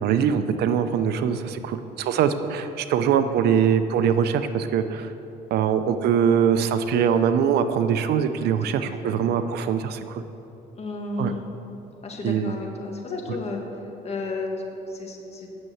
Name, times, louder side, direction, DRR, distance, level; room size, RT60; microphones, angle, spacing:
voice 1, 0.0-5.1 5.5-10.2 11.2-11.3 12.2-12.5, right 8 dB, 75° right, 10 dB, 0.6 m, -22 dB
voice 2, 8.8-9.2 10.8-11.5 12.0-14.5 14.9-15.5, left 3 dB, 40° left, 1 dB, 1.8 m, -33 dB
9.4 x 6.7 x 7.9 m, 2.9 s
cardioid pair, 110°, 17 cm